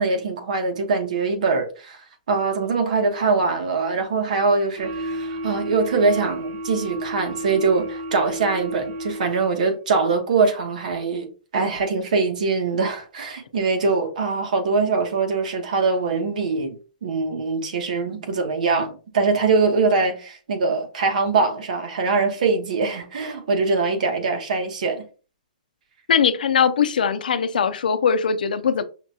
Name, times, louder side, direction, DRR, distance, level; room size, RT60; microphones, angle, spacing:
voice 1, 0.0-2.0 2.3-11.3 11.5-16.8 17.0-25.0, right 4 dB, 65° right, 1.1 m, -22 dB
sound 1, 4.8-9.6, right 1 dB, 30° right, 0.6 m, -32 dB
voice 2, 26.1-28.8, left 7 dB, 85° left, 0.5 m, -20 dB
5.7 x 2.3 x 2.8 m
hypercardioid pair, 170°, 5 cm